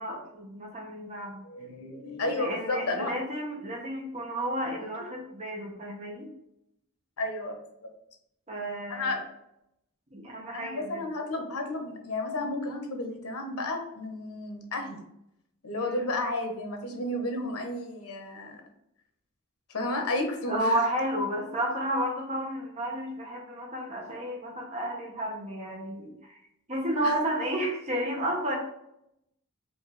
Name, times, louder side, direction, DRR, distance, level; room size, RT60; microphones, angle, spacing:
voice 1, 0.0-1.5 2.3-6.3 8.5-9.2 10.1-11.0 15.7-16.1 20.5-26.4 26.7-28.6, right 1 dB, 30° right, -1 dB, 0.9 m, -32 dB
voice 2, 1.4-3.1 7.2-7.6 8.9-9.2 10.5-15.0 15.6-18.6 19.7-20.8 27.0-27.2, left 2 dB, 90° left, 3 dB, 0.9 m, -32 dB
4.4 x 2.7 x 3.3 m, 0.79 s
head